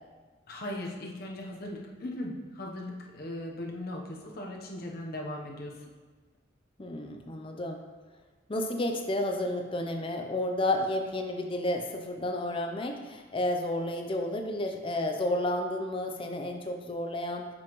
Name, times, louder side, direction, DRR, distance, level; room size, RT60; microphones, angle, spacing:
voice 1, 0.5-5.8, left 1 dB, 50° left, -1 dB, 0.9 m, -38 dB
voice 2, 6.8-7.8 8.5-17.5, left 1 dB, 25° left, 4 dB, 0.6 m, -31 dB
7.6 x 5.5 x 3.0 m, 1.4 s
head